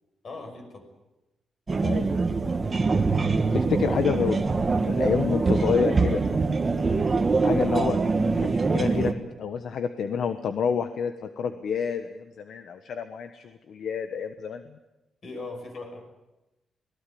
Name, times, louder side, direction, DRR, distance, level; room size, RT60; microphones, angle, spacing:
voice 1, 0.2-0.9 15.2-16.0, left 3 dB, 40° left, 5 dB, 6.3 m, -39 dB
sound 1, 1.7-9.1, right 3 dB, 25° right, 1.6 m, -24 dB
voice 2, 3.5-4.4 4.9-6.2 7.4-8.0 8.4-9.1 9.4-14.6, left 6 dB, 65° left, 9 dB, 1.2 m, -28 dB
24.5 x 18.5 x 8.6 m, 0.99 s
cardioid pair, 145°, 0 cm